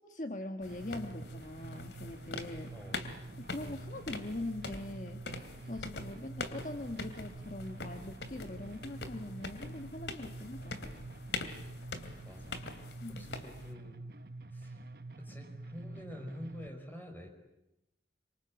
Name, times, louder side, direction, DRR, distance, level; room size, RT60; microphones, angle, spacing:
voice 1, 0.1-2.7 3.5-5.2 5.6-10.8 13.0-13.3, left 1 dB, 45° left, 6 dB, 1.4 m, -42 dB
sound 1, 0.6-13.7, left 3 dB, 85° left, 2.7 m, -44 dB
sound 2, 0.7-16.7, right 2 dB, 60° right, 1.0 m, -47 dB
voice 2, 2.7-3.0 3.6-3.8 12.2-12.6 13.1-14.0 14.5-14.8 15.2-17.3, equal, 10° left, 5 dB, 5.4 m, -47 dB
26.5 x 25.0 x 8.9 m, 0.88 s
head